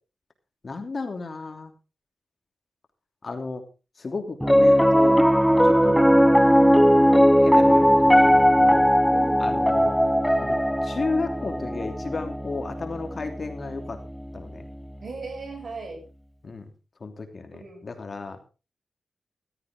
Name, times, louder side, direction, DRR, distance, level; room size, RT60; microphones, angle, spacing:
voice 1, 0.6-1.7 3.2-3.6 4.0-5.2 5.6-6.0 7.4-8.9 9.4-9.9 10.4-10.6 10.8-14.0 14.3-14.7 16.4-16.7 17.0-18.4, left 3 dB, 45° left, 6 dB, 2.9 m, -33 dB
Piano, 4.4-14.8, equal, ahead, 0.8 m, -19 dB
voice 2, 9.1-9.8 15.0-16.0 17.6-17.9, right 3 dB, 55° right, 3 dB, 6.8 m, -38 dB
15.0 x 13.0 x 3.7 m, 0.32 s
cardioid pair, 80°, 0 cm